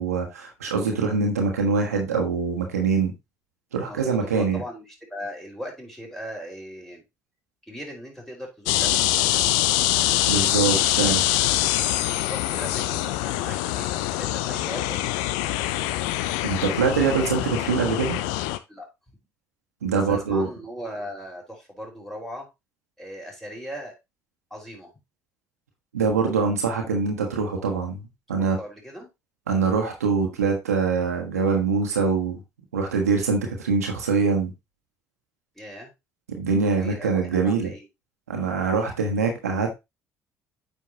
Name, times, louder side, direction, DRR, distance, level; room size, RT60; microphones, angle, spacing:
voice 1, 0.0-3.1 3.7-4.6 10.3-11.2 16.4-18.2 19.8-20.5 25.9-28.0 28.3-28.6 29.5-32.4 32.7-34.5 36.3-37.7 38.3-39.7, right 4 dB, 90° right, 2 dB, 1.3 m, -24 dB
voice 2, 3.8-7.0 7.7-9.5 12.2-15.2 18.7-18.9 19.9-22.5 23.0-23.9 24.5-24.9 28.3-29.1 35.5-35.9 36.7-37.9, equal, 5° left, -1 dB, 4.5 m, -38 dB
sound 1, 8.7-18.6, left 14 dB, 75° left, 0.6 m, -24 dB
8.8 x 5.1 x 2.9 m, 0.22 s
hypercardioid pair, 55°, 8 cm